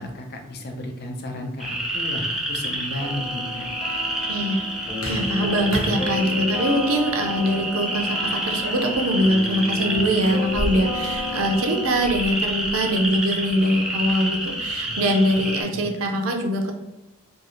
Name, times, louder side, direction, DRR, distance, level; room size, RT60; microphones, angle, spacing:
voice 1, 0.0-3.7 15.7-15.8, left 1 dB, 50° left, 3 dB, 0.5 m, -33 dB
sound 1, 1.6-15.6, right 1 dB, 5° right, 0.5 m, -28 dB
sound 2, 2.4-11.4, equal, 80° left, 0.8 m, -39 dB
sound 3, 3.0-12.2, left 2 dB, 30° left, 0.9 m, -33 dB
voice 2, 4.3-16.7, equal, 85° right, 3 dB, 0.5 m, -23 dB
2.6 x 2.3 x 3.0 m, 0.92 s
head